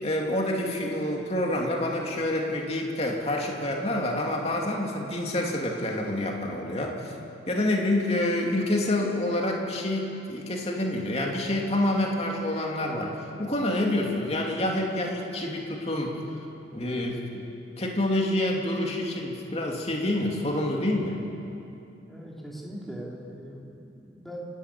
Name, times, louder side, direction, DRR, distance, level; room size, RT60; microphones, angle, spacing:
voice 1, 0.0-7.1 7.5-13.1 13.4-16.2 16.7-17.5 17.8-21.2, left 1 dB, 35° left, 0 dB, 2.7 m, -27 dB
voice 2, 22.1-24.4, equal, ahead, -3 dB, 3.0 m, -40 dB
29.5 x 11.5 x 8.6 m, 2.8 s
head